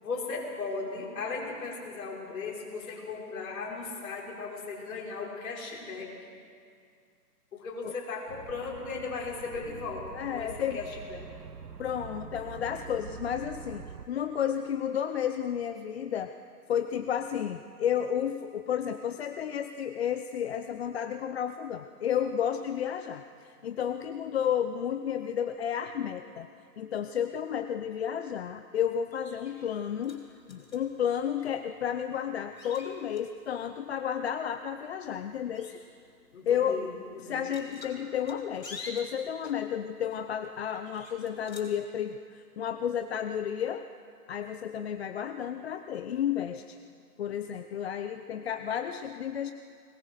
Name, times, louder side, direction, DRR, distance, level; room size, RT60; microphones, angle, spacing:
voice 1, 0.0-6.1 7.5-10.1 10.3-11.5 36.3-37.4, left 4 dB, 55° left, -2 dB, 5.9 m, -37 dB
sound 1, 8.3-14.1, right 6 dB, 85° right, 1.2 m, -45 dB
voice 2, 10.1-10.8 11.8-16.3 16.7-26.5 26.8-35.7 36.5-36.8 37.2-43.9 44.3-46.8 47.2-49.5, left 9 dB, 40° left, 9 dB, 0.7 m, -32 dB
sound 2, 29.0-41.8, left 3 dB, 90° left, 4.8 m, -51 dB
22.0 x 20.0 x 6.5 m, 2.3 s
hypercardioid pair, 140°, 48 cm